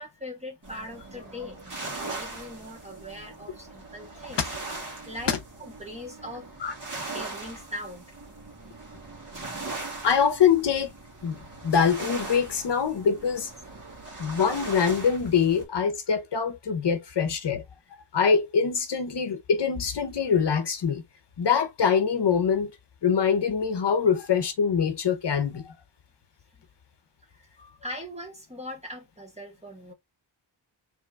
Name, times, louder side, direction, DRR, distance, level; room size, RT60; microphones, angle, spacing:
voice 1, 0.0-4.5 5.0-6.5 7.1-8.2 26.5-26.6 27.3-27.5 27.8-29.9, left 1 dB, 15° right, 1.4 m, -40 dB
sound 1, 0.6-15.6, right 3 dB, 40° right, 1.7 m, -40 dB
voice 2, 10.0-10.9 11.2-13.5 14.2-17.6 18.1-21.0 21.4-22.7 23.0-25.7, left 6 dB, 60° left, 0.8 m, -24 dB
3.7 x 3.2 x 3.2 m
wide cardioid pair, 175°, 46 cm